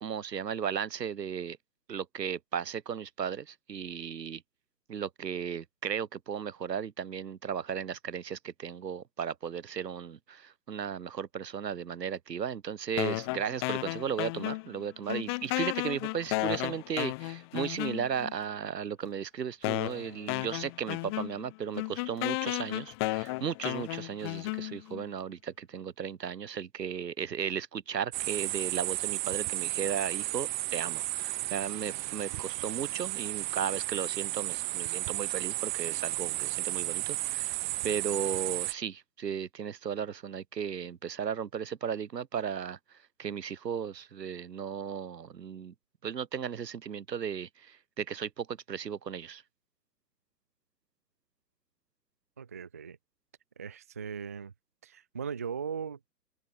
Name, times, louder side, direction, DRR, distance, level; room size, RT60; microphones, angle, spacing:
voice 1, 0.0-1.6 1.9-4.4 4.9-37.5 37.8-45.7 46.0-49.4, right 7 dB, 90° right, 2.0 m, -35 dB
sound 1, 13.0-14.8 15.1-18.3 19.0-19.1 19.6-25.0, left 27 dB, 15° left, 0.9 m, -34 dB
sound 2, 28.1-38.7, right 18 dB, 30° right, 1.8 m, -33 dB
voice 2, 52.4-53.0 53.6-54.5 54.8-56.1, right 6 dB, 10° right, 0.5 m, -38 dB
hypercardioid pair, 155°, 48 cm